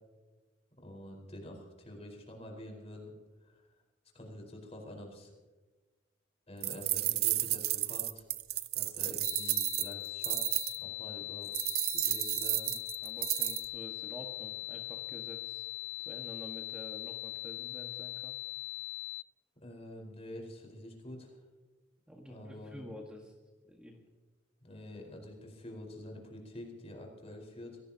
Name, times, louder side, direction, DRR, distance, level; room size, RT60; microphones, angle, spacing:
voice 1, 0.8-3.1 3.4-3.7 4.1-5.3 6.5-8.3 8.7-11.5 11.9-12.7 19.6-21.4 22.3-22.9 24.6-27.8, left 1 dB, 35° left, 1 dB, 4.6 m, -47 dB
sound 1, 6.6-10.8 11.5-13.6, right 15 dB, 55° right, 0.6 m, -32 dB
sound 2, 9.2-19.2, left 21 dB, 75° left, 0.4 m, -41 dB
voice 2, 13.0-15.6 16.0-18.4 22.1-23.3 23.6-24.0, equal, 5° right, -1 dB, 1.7 m, -49 dB
25.0 x 17.5 x 2.9 m, 1.3 s
head